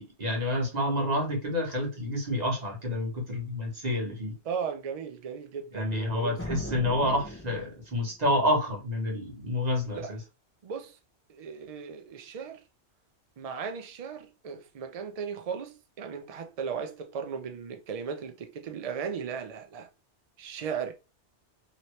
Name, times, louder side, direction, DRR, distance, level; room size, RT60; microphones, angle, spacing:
voice 1, 0.0-4.3 5.7-10.2, left 1 dB, 35° right, 1.2 m, -29 dB
voice 2, 4.4-6.4 9.9-10.1 10.6-11.0 11.3-12.6 13.4-19.9 20.4-20.9, right 6 dB, 75° right, 0.3 m, -36 dB
sound 1, 6.4-8.1, left 1 dB, 15° left, 0.4 m, -38 dB
2.9 x 2.8 x 3.1 m
omnidirectional pair, 1.2 m